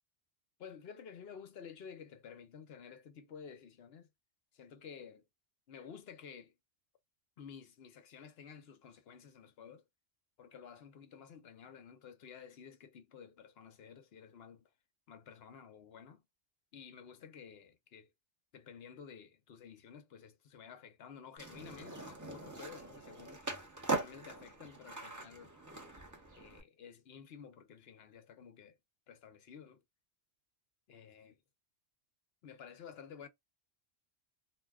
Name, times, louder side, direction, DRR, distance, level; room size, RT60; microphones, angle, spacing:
voice 1, 0.6-4.1 4.5-5.2 5.7-6.5 7.4-9.8 10.4-14.7 15.1-16.2 16.7-18.1 18.5-23.4 23.9-25.6 26.4-28.8 29.1-29.8 30.9-31.3 32.4-33.3, left 7 dB, 65° left, 0.9 m, -52 dB
Skateboard, 21.4-26.6, right 3 dB, 20° right, 0.7 m, -41 dB
2.6 x 2.2 x 3.4 m
omnidirectional pair, 1.2 m